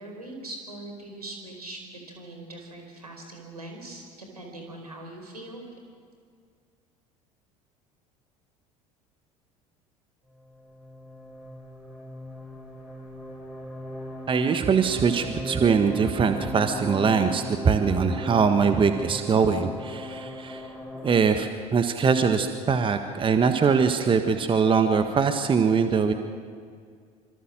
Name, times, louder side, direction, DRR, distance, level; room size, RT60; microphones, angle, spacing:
voice 1, 0.0-5.6, right 2 dB, 80° right, 2 dB, 4.8 m, -41 dB
sound 1, 10.4-21.2, left 1 dB, 5° right, 6.2 m, -37 dB
voice 2, 14.3-20.6 21.0-26.1, right 6 dB, 25° right, 7 dB, 1.6 m, -22 dB
26.5 x 25.5 x 7.6 m, 2.1 s
figure-of-eight pair, 65°, 19 cm